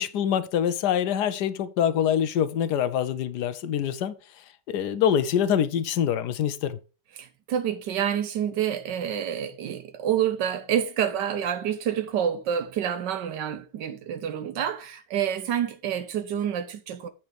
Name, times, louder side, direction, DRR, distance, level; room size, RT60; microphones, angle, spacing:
voice 1, 0.0-4.1 4.7-6.8, left 9 dB, 75° left, 1.2 m, -25 dB
voice 2, 7.2-17.1, right 9 dB, 90° right, 1.5 m, -28 dB
8.3 x 4.4 x 5.0 m
omnidirectional pair, 1.8 m